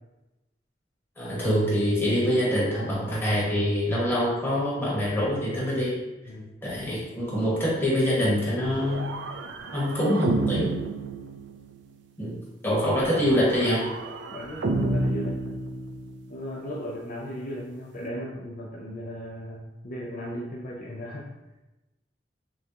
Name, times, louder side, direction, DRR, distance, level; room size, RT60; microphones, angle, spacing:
voice 1, 1.2-5.9 6.6-9.1 9.7-10.7 12.2-12.4 12.6-13.8, equal, 15° left, -8 dB, 1.4 m, -25 dB
sound 1, 8.6-11.9 13.0-16.3, right 2 dB, 80° right, 0.4 m, -31 dB
voice 2, 14.3-15.4 16.3-21.3, equal, 50° left, -3 dB, 0.5 m, -36 dB
6.2 x 2.3 x 2.8 m, 1.0 s
head